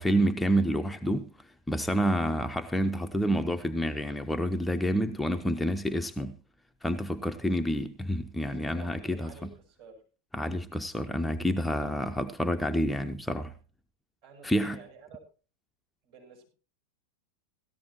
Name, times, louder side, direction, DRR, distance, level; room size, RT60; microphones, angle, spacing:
voice 1, 0.0-6.4 6.8-9.5 10.3-13.5 14.4-14.8, equal, 5° left, 0.5 m, -28 dB
voice 2, 8.4-10.0 14.2-15.2 16.0-16.5, right 5 dB, 55° right, 6.8 m, -51 dB
17.5 x 14.0 x 2.9 m
figure-of-eight pair, 90°, 0 cm